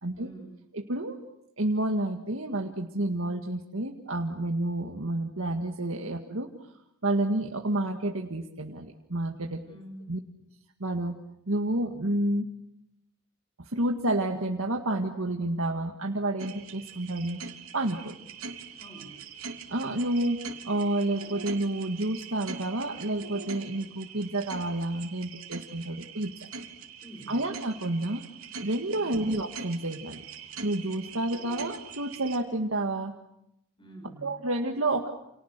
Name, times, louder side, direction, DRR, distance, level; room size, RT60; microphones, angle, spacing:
voice 1, 0.1-0.5 9.6-10.1 18.3-18.4 18.8-19.2 27.0-27.4 28.9-29.2 33.8-34.3, right 1 dB, 25° left, 3 dB, 7.1 m, -47 dB
voice 2, 0.7-1.2 1.6-6.7 7.0-9.6 10.1-10.2 10.8-11.2 11.5-12.5 13.6-17.4 17.7-18.1 19.7-20.4 20.6-26.3 27.3-28.2 28.6-33.1 34.2-35.1, right 1 dB, 75° right, 3 dB, 1.9 m, -30 dB
sound 1, 16.4-32.4, right 5 dB, 90° right, 3.4 m, -43 dB
30.0 x 28.5 x 6.8 m, 0.82 s
head